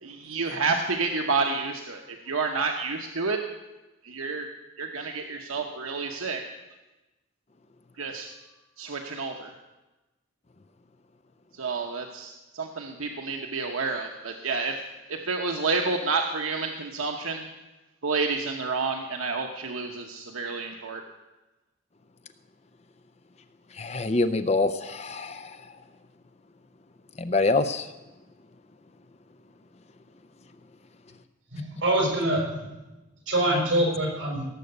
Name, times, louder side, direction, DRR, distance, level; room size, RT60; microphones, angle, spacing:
voice 1, 0.0-3.4 4.0-4.5 4.8-6.4 8.0-8.3 8.8-9.5 11.5-14.8 15.1-17.5 18.0-21.0, right 4 dB, 90° right, 3 dB, 1.0 m, -29 dB
voice 2, 23.7-25.8 27.2-27.9, left 3 dB, 30° left, 10 dB, 0.5 m, -26 dB
voice 3, 31.5-32.7 33.3-34.5, right 1 dB, 65° right, -1 dB, 5.5 m, -25 dB
17.0 x 6.8 x 8.0 m, 1.1 s
head